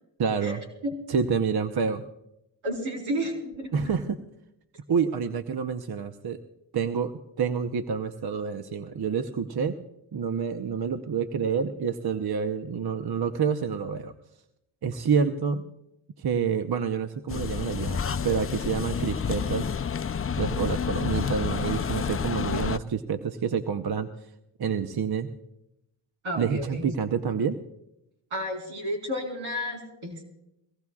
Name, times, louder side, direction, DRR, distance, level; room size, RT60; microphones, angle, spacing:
voice 1, 0.2-0.6 1.1-2.0 3.7-4.2 4.9-6.4 6.7-7.1 7.4-9.7 10.1-14.1 14.8-15.6 16.2-19.7 20.4-24.1 24.6-25.3 26.4-27.6, right 6 dB, 50° right, 8 dB, 0.9 m, -28 dB
voice 2, 2.6-3.8 26.2-26.8 28.3-30.2, equal, 80° right, 1 dB, 4.3 m, -32 dB
sound 1, 17.3-22.8, left 7 dB, 30° left, 0.5 m, -29 dB
23.0 x 18.0 x 2.4 m, 0.85 s
cardioid pair, 55°, 47 cm